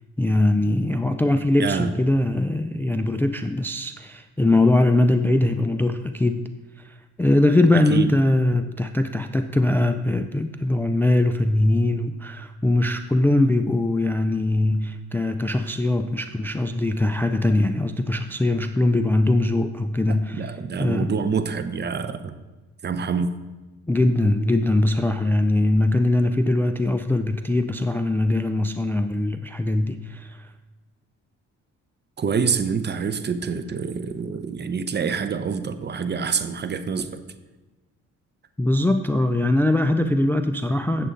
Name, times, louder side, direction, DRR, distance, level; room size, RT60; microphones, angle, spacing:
voice 1, 0.2-6.5 6.8-21.1 23.9-30.5 38.6-41.1, left 2 dB, 5° left, 8 dB, 0.3 m, -21 dB
voice 2, 1.6-1.9 7.9-8.1 20.1-22.4 22.8-23.3 32.2-37.2, right 6 dB, 35° right, 10 dB, 0.7 m, -26 dB
8.2 x 7.6 x 3.8 m, 1.2 s
cardioid pair, 90°, 30 cm